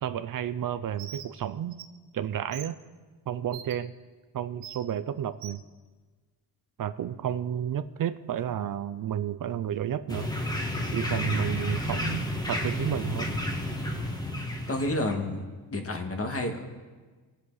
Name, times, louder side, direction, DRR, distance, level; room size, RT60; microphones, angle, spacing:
voice 1, 0.0-1.8 2.1-2.7 3.3-3.9 4.3-5.6 6.8-10.3 10.9-13.3, right 10 dB, 55° right, 13 dB, 0.6 m, -31 dB
Bird, 1.0-1.3 1.7-1.8 2.5-2.7 3.5-3.7 4.6-4.8 5.4-5.6, right 10 dB, 90° right, 1.0 m, -42 dB
sound 1, 10.1-15.1, left 1 dB, 10° left, 1.8 m, -31 dB
voice 2, 14.7-15.5 15.7-16.7, left 1 dB, 35° left, 4 dB, 1.8 m, -30 dB
20.5 x 7.9 x 4.1 m, 1.4 s
cardioid pair, 85°, 41 cm